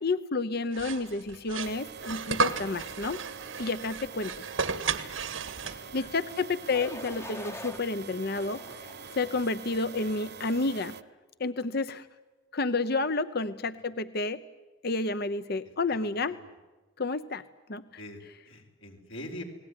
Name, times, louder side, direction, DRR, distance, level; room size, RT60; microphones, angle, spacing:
voice 1, 0.0-3.2 3.6-4.3 5.7-8.6 9.2-10.9 11.4-12.1 12.5-14.4 14.8-16.4 17.0-17.4 17.7-17.8, left 3 dB, 55° left, 12 dB, 0.8 m, -30 dB
sound 1, 0.7-6.1, right 5 dB, 85° right, 1.9 m, -33 dB
sound 2, 1.6-11.0, right 6 dB, 55° right, 1.0 m, -45 dB
sound 3, 6.7-7.8 8.3-9.4 10.0-10.3, left 1 dB, 15° left, 0.9 m, -44 dB
voice 2, 18.5-19.4, left 1 dB, 80° left, 2 dB, 4.4 m, -43 dB
30.0 x 20.0 x 9.8 m, 1.2 s
head